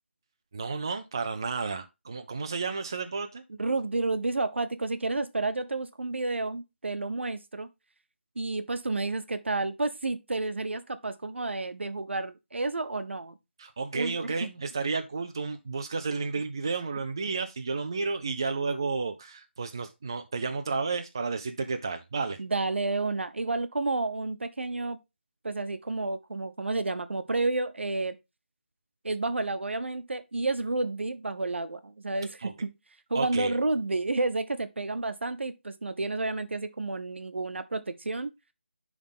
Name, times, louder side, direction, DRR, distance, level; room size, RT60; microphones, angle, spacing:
voice 1, 0.5-3.4 13.6-22.4 32.4-32.5 33.1-33.6, right 4 dB, 20° right, 0.4 m, -32 dB
voice 2, 3.6-7.7 8.4-13.4 13.9-14.5 22.4-25.0 25.4-28.1 29.0-32.7 33.1-38.3, right 3 dB, 75° right, 1.0 m, -30 dB
10.5 x 3.6 x 3.7 m
figure-of-eight pair, 175°, 6 cm